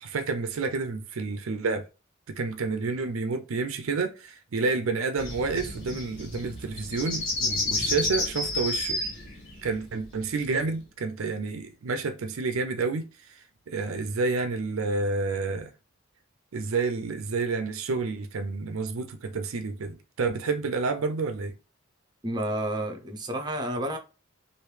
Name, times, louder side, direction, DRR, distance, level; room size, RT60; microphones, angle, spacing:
voice 1, 0.0-1.8 2.3-9.0 9.6-13.1 13.7-15.7 16.5-21.5, right 4 dB, 75° right, 0.5 m, -29 dB
sound 1, 5.2-10.7, left 2 dB, 60° left, 1.8 m, -31 dB
voice 2, 22.2-24.0, right 1 dB, 20° right, 0.6 m, -30 dB
3.0 x 2.6 x 3.2 m
head